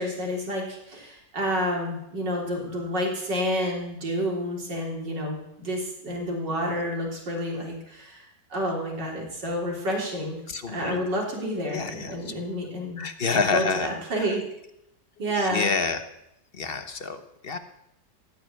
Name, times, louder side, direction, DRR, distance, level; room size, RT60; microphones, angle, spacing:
voice 1, 0.0-10.4 10.7-13.0 13.3-14.4 15.2-15.7, equal, 75° right, -1 dB, 4.3 m, -29 dB
voice 2, 10.5-11.0 11.7-12.3 13.0-13.9 14.2-14.3 15.5-16.0 16.5-17.6, left 4 dB, 40° left, 8 dB, 1.1 m, -28 dB
17.0 x 6.7 x 9.4 m, 0.84 s
omnidirectional pair, 1.9 m